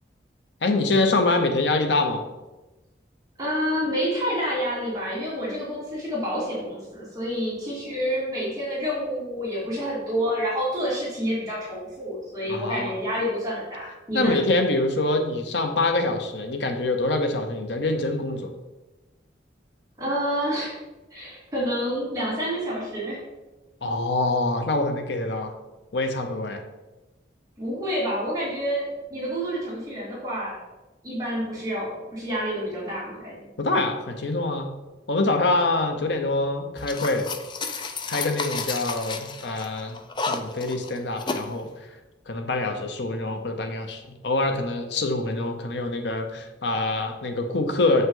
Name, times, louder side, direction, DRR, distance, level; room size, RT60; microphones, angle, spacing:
voice 1, 0.6-2.2 12.5-12.9 14.1-18.4 23.8-25.5 25.9-26.6 33.6-34.7 35.1-37.3 38.1-40.0 40.3-41.7 42.3-48.1, left 2 dB, 75° left, 5 dB, 0.8 m, -25 dB
voice 2, 3.4-14.4 20.0-20.8 21.1-23.2 27.6-30.6 31.0-33.5, equal, 20° right, -8 dB, 2.4 m, -28 dB
sound 1, 36.8-41.5, left 4 dB, 25° left, 0.4 m, -32 dB
7.8 x 5.5 x 3.8 m, 1.1 s
head